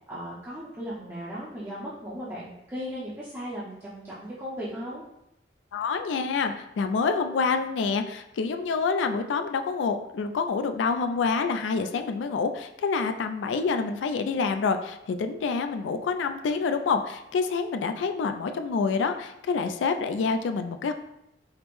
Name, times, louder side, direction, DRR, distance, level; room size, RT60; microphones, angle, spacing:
voice 1, 0.1-5.0, equal, 15° right, -9 dB, 0.6 m, -37 dB
voice 2, 5.7-20.9, left 5 dB, 85° left, 7 dB, 0.3 m, -27 dB
5.0 x 2.0 x 3.0 m, 0.83 s
head